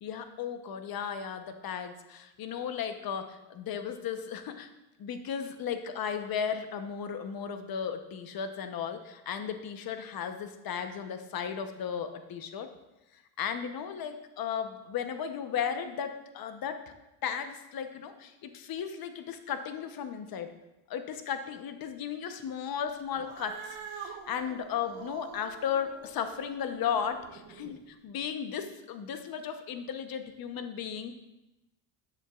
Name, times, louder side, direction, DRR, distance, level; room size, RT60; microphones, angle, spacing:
voice 1, 0.0-4.7 5.0-12.7 13.4-16.9 17.2-20.5 20.9-31.1, left 7 dB, 45° left, 8 dB, 0.9 m, -35 dB
Cat, 23.1-27.8, right 6 dB, 70° right, 1.2 m, -46 dB
12.5 x 8.1 x 2.4 m, 0.95 s
cardioid pair, 120°, 48 cm